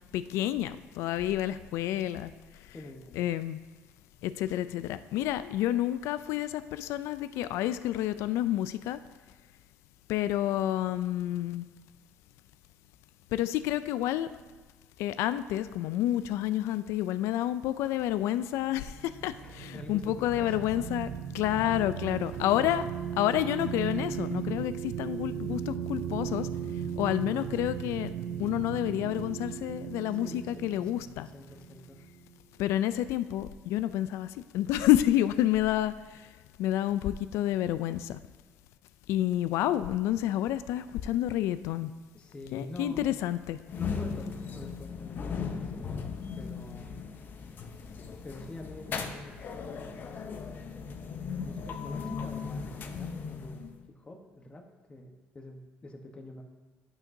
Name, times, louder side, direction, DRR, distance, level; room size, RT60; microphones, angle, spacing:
voice 1, 0.1-2.3 3.2-3.6 4.2-9.0 10.1-11.7 13.3-14.3 15.0-21.1 21.3-22.8 23.2-26.5 27.0-28.1 28.4-31.3 32.6-34.3 34.5-35.9 36.6-38.2 39.1-41.9 42.5-43.6, left 13 dB, 80° left, 13 dB, 0.3 m, -29 dB
voice 2, 2.7-3.3 19.4-20.9 21.9-22.4 30.1-32.0 42.1-43.4 43.7-45.9 46.4-47.0 48.2-50.0 50.4-56.4, left 1 dB, 25° left, 2 dB, 1.0 m, -47 dB
sound 1, 18.7-32.3, right 8 dB, 85° right, 0.5 m, -37 dB
sound 2, 43.7-53.8, left 5 dB, 45° left, 0.7 m, -37 dB
11.0 x 5.9 x 2.7 m, 1.3 s
cardioid pair, 115°, 5 cm